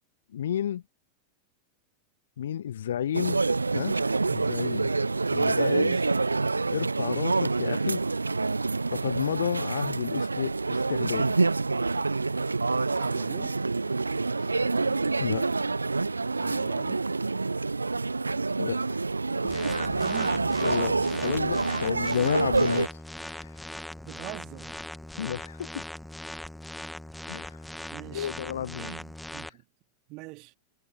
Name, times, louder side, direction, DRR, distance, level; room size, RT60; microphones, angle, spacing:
voice 1, 0.3-0.8 2.4-3.4 3.7-4.0 4.3-4.9 5.3-6.0 6.7-8.1 8.9-11.4 14.4-14.5 15.2-15.5 18.6-19.0 20.6-23.6 25.2-25.8 27.3-27.6 28.1-28.9, left 10 dB, 65° left, 0.5 m, -31 dB
sound 1, 3.1-22.9, right 3 dB, 80° right, 0.4 m, -27 dB
voice 2, 5.7-6.1 12.9-13.6 16.4-17.1 19.6-20.5 24.0-24.8 27.9-28.4 28.8-29.6 30.1-30.5, right 25 dB, 40° right, 2.3 m, -43 dB
sound 2, 19.5-29.5, left 1 dB, 5° left, 1.7 m, -40 dB
figure-of-eight pair, 90°, 0 cm